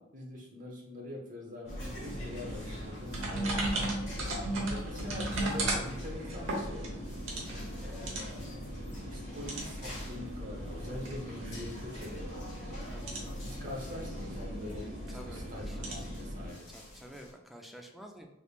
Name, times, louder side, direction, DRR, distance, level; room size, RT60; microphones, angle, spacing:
voice 1, 0.0-4.1 4.7-7.0 7.8-12.3 13.3-14.9 15.2-16.7, left 1 dB, 45° right, -1 dB, 0.9 m, -44 dB
sound 1, 1.7-17.3, left 1 dB, 40° left, 1.3 m, -50 dB
sound 2, 1.7-16.5, right 1 dB, 85° right, 1.0 m, -37 dB
voice 2, 8.0-8.4 11.2-11.3 12.9-13.3 15.1-16.1 16.7-18.3, equal, ahead, 2 dB, 0.4 m, -51 dB
3.4 x 3.1 x 2.4 m, 0.93 s
head